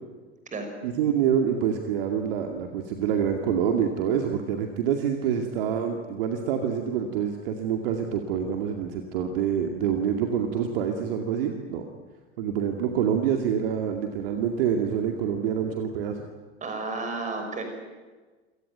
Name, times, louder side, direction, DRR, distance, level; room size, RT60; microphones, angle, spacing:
voice 1, 0.8-11.9 12.4-16.2, right 8 dB, 50° right, 5 dB, 2.4 m, -26 dB
voice 2, 16.6-17.6, right 3 dB, 20° right, 5 dB, 6.3 m, -32 dB
28.5 x 17.5 x 9.4 m, 1.3 s
figure-of-eight pair, 90°, 35 cm